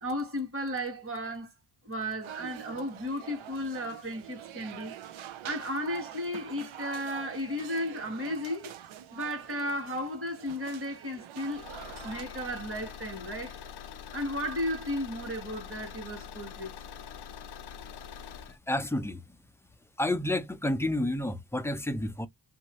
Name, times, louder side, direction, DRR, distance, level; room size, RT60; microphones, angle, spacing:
voice 1, 0.0-1.5 1.8-4.9 5.4-8.7 9.1-11.6 12.0-13.6 14.1-16.7, equal, 25° right, 1.5 m, -34 dB
sound 1, 2.2-12.2, right 11 dB, 80° right, 0.7 m, -45 dB
Car / Engine, 11.5-18.6, left 8 dB, 60° left, 0.6 m, -44 dB
voice 2, 18.4-19.4 20.0-22.3, left 1 dB, 5° left, 0.5 m, -30 dB
2.8 x 2.6 x 3.0 m
cardioid pair, 80°, 47 cm